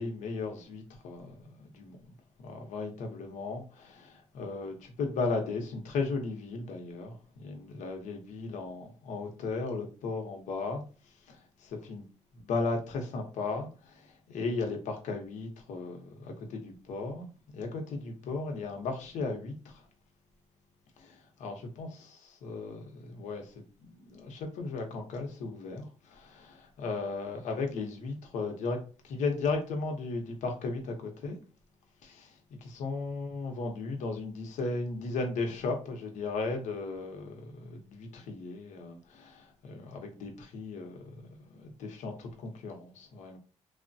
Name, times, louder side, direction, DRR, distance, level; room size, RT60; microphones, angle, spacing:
voice 1, 0.0-2.1 2.4-10.8 11.3-12.0 12.4-17.3 17.5-19.8 21.0-23.5 23.9-28.8 29.0-31.4 32.0-32.3 32.6-41.0 41.6-43.4, left 3 dB, 80° left, 0.8 m, -36 dB
3.2 x 2.1 x 2.6 m
cardioid pair, 155°, 12 cm